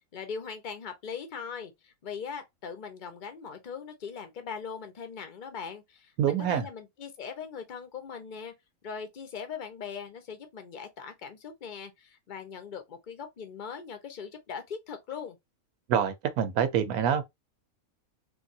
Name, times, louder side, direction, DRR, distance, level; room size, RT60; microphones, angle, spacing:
voice 1, 0.1-8.5 8.8-15.4, left 6 dB, 40° left, 0.8 m, -40 dB
voice 2, 6.2-6.7 15.9-17.2, right 9 dB, 85° right, 1.1 m, -26 dB
3.3 x 2.7 x 2.7 m
omnidirectional pair, 1.5 m